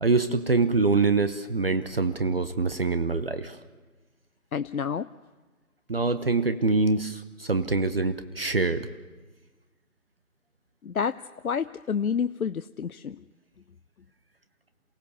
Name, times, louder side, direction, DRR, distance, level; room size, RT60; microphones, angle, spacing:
voice 1, 0.0-3.6 5.9-8.9, right 3 dB, 40° right, 11 dB, 0.9 m, -25 dB
voice 2, 4.5-5.1 10.8-11.2 11.4-13.2, left 6 dB, 80° left, 12 dB, 0.7 m, -29 dB
28.0 x 17.0 x 6.8 m, 1.3 s
figure-of-eight pair, 165°, 43 cm